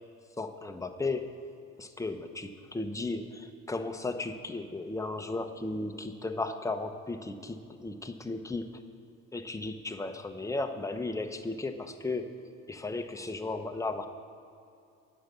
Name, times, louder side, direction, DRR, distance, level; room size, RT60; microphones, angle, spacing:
voice 1, 0.4-1.4 1.8-8.8 9.3-12.3 12.7-14.1, left 3 dB, 10° left, 6 dB, 0.8 m, -35 dB
9.6 x 6.9 x 8.4 m, 2.5 s
cardioid pair, 100°, 29 cm